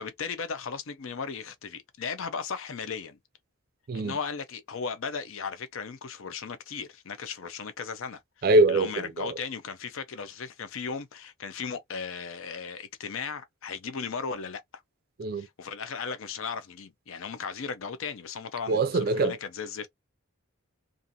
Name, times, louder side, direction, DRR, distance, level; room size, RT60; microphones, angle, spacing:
voice 1, 0.0-3.2 3.9-14.6 15.4-19.9, left 5 dB, 70° left, 0.5 m, -36 dB
voice 2, 8.4-9.3 15.2-15.5 18.7-19.4, right 2 dB, 45° right, 0.4 m, -23 dB
2.5 x 2.4 x 2.6 m
head